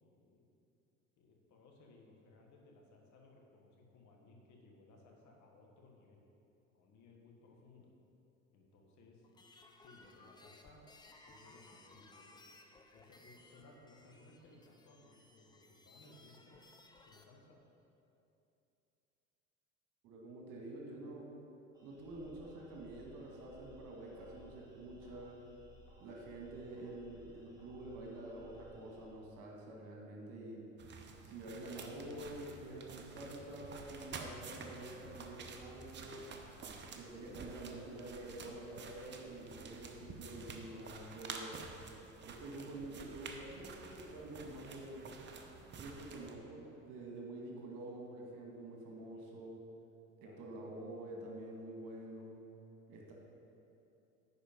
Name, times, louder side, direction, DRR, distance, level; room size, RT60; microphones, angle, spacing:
voice 1, 0.0-0.4 1.2-6.2 6.7-7.9 8.5-9.3 9.8-10.8 11.3-16.6 17.0-17.6 49.1-49.4 50.2-50.5, left 2 dB, 45° left, 0 dB, 1.5 m, -62 dB
sound 1, 9.2-17.2, left 2 dB, 10° left, 0.6 m, -61 dB
voice 2, 20.0-21.3 21.8-25.4 26.0-30.6 31.2-36.3 36.9-41.6 42.2-45.0 45.7-49.6 50.2-52.4 52.9-53.1, right 1 dB, 50° right, -1 dB, 1.8 m, -48 dB
sound 2, 21.7-29.1, right 2 dB, 10° right, 1.9 m, -60 dB
sound 3, 30.8-46.4, right 4 dB, 25° right, 0.8 m, -50 dB
9.9 x 4.6 x 5.2 m, 2.8 s
figure-of-eight pair, 70°, 41 cm